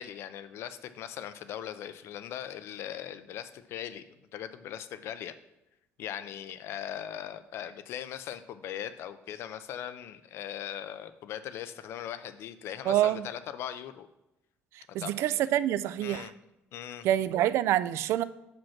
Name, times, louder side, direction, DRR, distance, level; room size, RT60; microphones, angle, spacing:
voice 1, 0.0-4.0 4.3-5.3 6.0-14.1 15.0-15.5 16.0-16.3 16.7-17.1, left 10 dB, 65° left, 12 dB, 0.5 m, -39 dB
voice 2, 12.9-13.3 14.9-16.3 17.0-18.2, right 12 dB, 70° right, 16 dB, 0.3 m, -26 dB
5.9 x 5.2 x 5.8 m, 0.90 s
cardioid pair, 140°, 5 cm